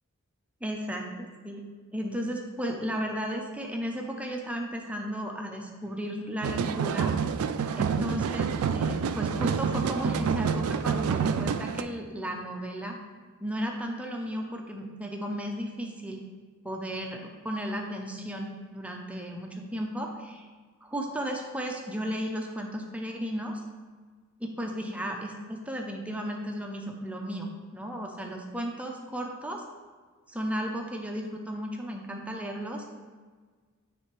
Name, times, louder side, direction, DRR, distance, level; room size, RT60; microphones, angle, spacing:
voice 1, 0.6-1.6 1.9-7.1 7.7-13.0 13.4-16.2 16.6-20.5 20.8-23.6 24.4-29.6 30.3-32.8, equal, 5° right, 1 dB, 0.5 m, -34 dB
sound 1, 6.4-11.8, right 6 dB, 70° right, 0.3 m, -28 dB
9.5 x 3.3 x 3.1 m, 1.5 s
head